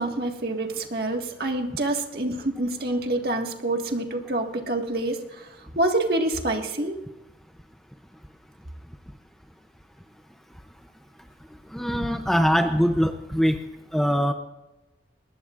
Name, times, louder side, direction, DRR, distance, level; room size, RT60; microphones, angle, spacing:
voice 1, 0.0-5.2 5.8-7.0, right 2 dB, 55° right, 2 dB, 1.8 m, -26 dB
voice 2, 11.7-13.6 13.9-14.3, equal, ahead, 6 dB, 0.6 m, -22 dB
22.5 x 20.0 x 2.5 m, 1.1 s
head